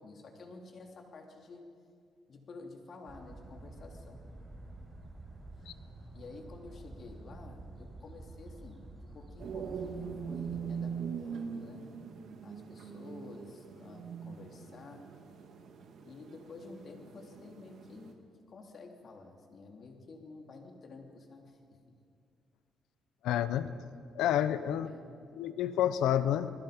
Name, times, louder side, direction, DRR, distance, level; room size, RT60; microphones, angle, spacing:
voice 1, 0.0-1.6 2.3-4.3 6.1-8.8 9.1-12.0 12.4-15.1 16.0-18.2 18.5-21.6 24.7-25.0, left 3 dB, 50° left, 2 dB, 3.4 m, -50 dB
sound 1, 3.1-10.7, right 2 dB, 25° right, 5.4 m, -49 dB
sound 2, 9.4-18.1, right 6 dB, 70° right, 2.1 m, -42 dB
voice 2, 23.2-23.7 24.1-24.9 25.4-26.5, left 10 dB, 85° left, 13 dB, 0.9 m, -29 dB
28.5 x 21.0 x 5.3 m, 2.3 s
cardioid pair, 90°, 0 cm